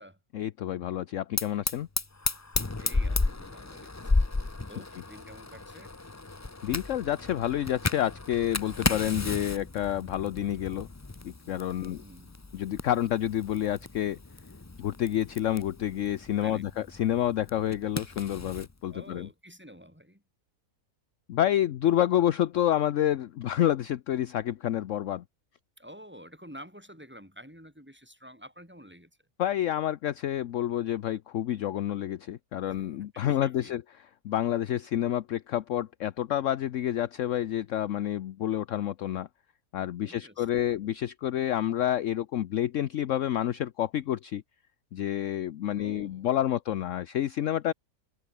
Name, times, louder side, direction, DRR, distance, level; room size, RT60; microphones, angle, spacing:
voice 1, 0.3-1.9 6.6-10.9 11.2-12.0 12.5-14.2 14.8-19.3 21.3-25.2 29.4-33.8 34.2-39.3 39.7-44.4 44.9-47.7, left 11 dB, 60° left, 1.0 m, -29 dB
Fire, 1.4-18.7, left 3 dB, 20° left, 0.4 m, -34 dB
voice 2, 2.8-4.2 4.7-6.0 11.8-12.4 16.4-16.7 18.9-20.2 25.8-29.2 32.7-32.9 33.1-33.8 40.0-40.8 45.8-46.3, equal, 5° right, 7.1 m, -49 dB
omnidirectional pair, 1.6 m